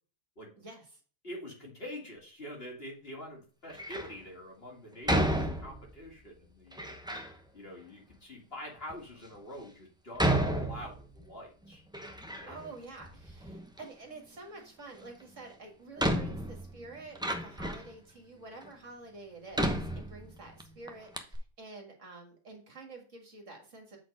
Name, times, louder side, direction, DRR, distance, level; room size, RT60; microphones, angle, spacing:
voice 1, 0.6-0.9 12.5-24.0, right 3 dB, 50° right, 2 dB, 2.0 m, -48 dB
voice 2, 1.2-7.0 7.5-11.8 12.4-12.7, left 1 dB, 35° left, -1 dB, 2.1 m, -45 dB
Door, 3.7-4.2 5.1-6.0 6.7-7.3 8.1-8.2 8.9-9.0 10.2-11.3 11.7-12.7 13.0-13.9 15.2-15.3 16.0-17.9 18.6-18.7 19.5-20.6 20.9-21.0 21.1-21.4, right 1 dB, 5° right, 0.4 m, -32 dB
7.7 x 4.4 x 5.2 m, 0.39 s
omnidirectional pair, 1.8 m